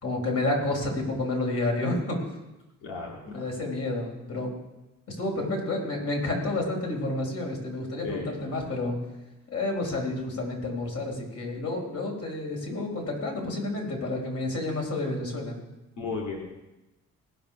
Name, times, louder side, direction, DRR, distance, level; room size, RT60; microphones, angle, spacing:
voice 1, 0.0-2.2 3.3-4.5 5.1-9.0 9.5-15.6, left 2 dB, 55° left, 1 dB, 4.3 m, -30 dB
voice 2, 2.8-3.4 8.0-8.3 16.0-16.4, left 4 dB, 85° left, -3 dB, 2.3 m, -34 dB
19.0 x 6.9 x 6.0 m, 1.0 s
cardioid pair, 90°, 30 cm